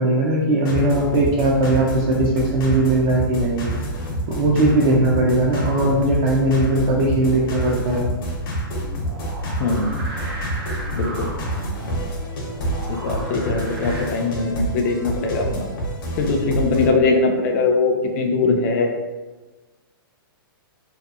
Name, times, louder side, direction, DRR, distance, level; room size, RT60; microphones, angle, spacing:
voice 1, 0.0-3.7 4.3-8.0, right 1 dB, 35° right, -4 dB, 0.4 m, -19 dB
sound 1, 0.6-16.9, right 1 dB, 65° left, 0.7 m, -28 dB
sound 2, 9.0-14.0, right 1 dB, 85° right, 0.7 m, -36 dB
voice 2, 11.0-11.3 12.9-15.7 16.2-18.9, left 3 dB, 40° left, 3 dB, 0.4 m, -21 dB
2.7 x 2.2 x 2.4 m, 1.2 s
hypercardioid pair, 145°, 12 cm